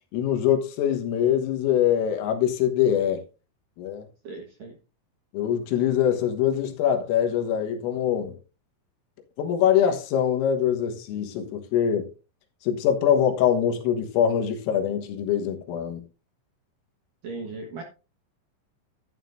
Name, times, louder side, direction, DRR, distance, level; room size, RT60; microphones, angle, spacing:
voice 1, 0.1-3.2 3.8-4.1 5.3-8.4 9.4-12.1 12.6-16.0, left 9 dB, 85° left, 4.0 m, -23 dB
voice 2, 4.2-4.8 17.2-17.8, right 3 dB, 70° right, 2.1 m, -37 dB
11.5 x 11.5 x 2.6 m
omnidirectional pair, 5.8 m